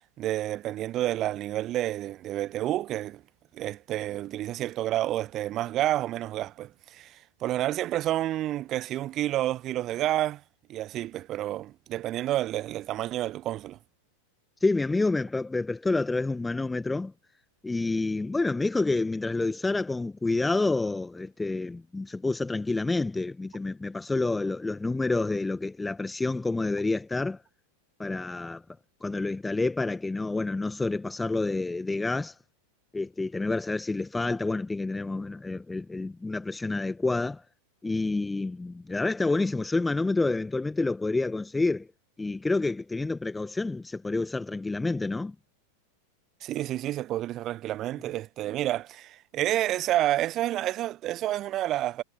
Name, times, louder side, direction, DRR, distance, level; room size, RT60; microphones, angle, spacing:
voice 1, 0.2-3.2 3.5-10.4 10.7-13.8 46.4-52.0, right 14 dB, 35° right, 1.0 m, -29 dB
voice 2, 14.6-17.1 17.6-27.4 28.0-28.6 29.0-32.3 32.9-37.4 37.8-41.9 42.2-45.3, left 3 dB, 10° left, 1.6 m, -28 dB
figure-of-eight pair, 90°, 0 cm